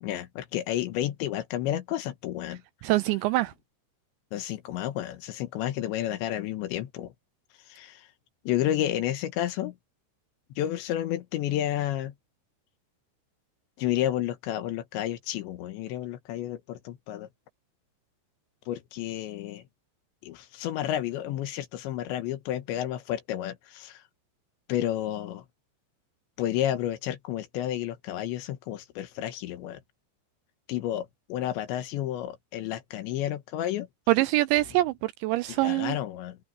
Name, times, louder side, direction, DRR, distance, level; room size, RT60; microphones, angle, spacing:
voice 1, 0.0-2.6 4.3-7.1 7.7-8.1 8.4-9.7 10.6-12.1 13.8-17.3 18.7-19.6 20.2-24.0 24.7-25.4 26.4-29.8 30.7-33.9 35.5-36.4, left 12 dB, 75° left, 3.4 m, -31 dB
voice 2, 2.8-3.5 34.1-36.0, right 18 dB, 85° right, 2.7 m, -24 dB
omnidirectional pair, 5.5 m